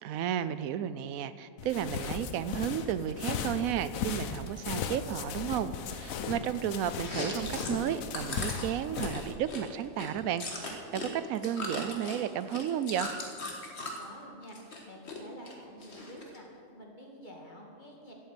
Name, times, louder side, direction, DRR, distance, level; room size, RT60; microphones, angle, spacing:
voice 1, 0.0-13.1, right 10 dB, 85° right, 13 dB, 1.0 m, -33 dB
sound 1, 1.6-9.3, left 7 dB, 80° left, 1.2 m, -37 dB
Chewing mastication, 7.0-11.1 11.4-14.0 14.4-15.2 15.5-16.4, left 2 dB, 50° left, 1.8 m, -38 dB
voice 2, 14.0-18.1, equal, 35° left, -1 dB, 2.1 m, -49 dB
12.5 x 8.4 x 7.7 m, 2.6 s
omnidirectional pair, 1.4 m